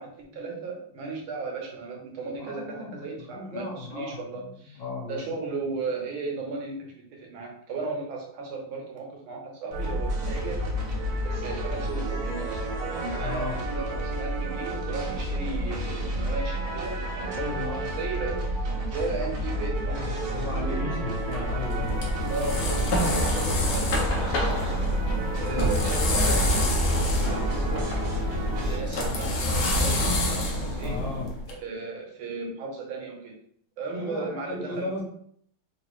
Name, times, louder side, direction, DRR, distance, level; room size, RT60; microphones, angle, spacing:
voice 1, 0.0-4.8 5.1-17.4 18.0-20.3 20.7-21.0 22.3-27.9 28.2-31.0 31.5-33.3 33.8-34.9, right 4 dB, 70° right, 0 dB, 1.8 m, -36 dB
voice 2, 2.4-4.5 4.8-5.2 13.2-13.6 17.3-17.9 19.9-22.0 25.5-25.8 30.8-31.3 34.0-35.0, left 2 dB, 60° left, -8 dB, 2.4 m, -35 dB
sound 1, 9.7-28.8, right 1 dB, 55° right, 1.2 m, -30 dB
sound 2, 21.2-31.5, left 1 dB, 75° left, 1.7 m, -27 dB
5.2 x 2.8 x 3.0 m, 0.64 s
omnidirectional pair, 2.4 m